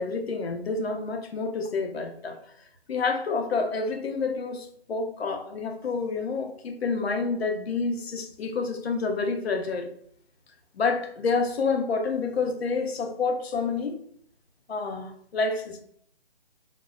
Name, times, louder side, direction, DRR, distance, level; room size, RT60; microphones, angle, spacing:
voice 1, 0.0-2.4 2.9-9.9 10.7-14.0 14.7-15.8, left 4 dB, 80° left, 0.6 m, -28 dB
2.1 x 2.0 x 3.4 m
hypercardioid pair, 155°, 31 cm